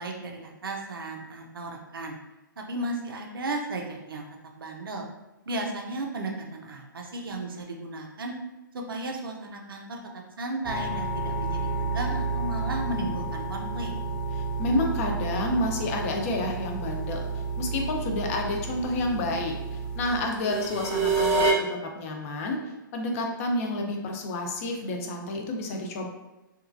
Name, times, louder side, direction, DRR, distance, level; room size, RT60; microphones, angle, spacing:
voice 1, 0.0-2.2 2.6-4.3 4.6-5.0 5.5-8.3 8.7-10.0 10.4-13.9, right 2 dB, 90° right, 1 dB, 0.5 m, -34 dB
sound 1, 10.6-21.5, right 3 dB, 20° right, 0.4 m, -30 dB
voice 2, 14.3-26.1, left 1 dB, 40° left, 2 dB, 0.5 m, -30 dB
2.9 x 2.3 x 2.5 m, 1.0 s
hypercardioid pair, 140°, 11 cm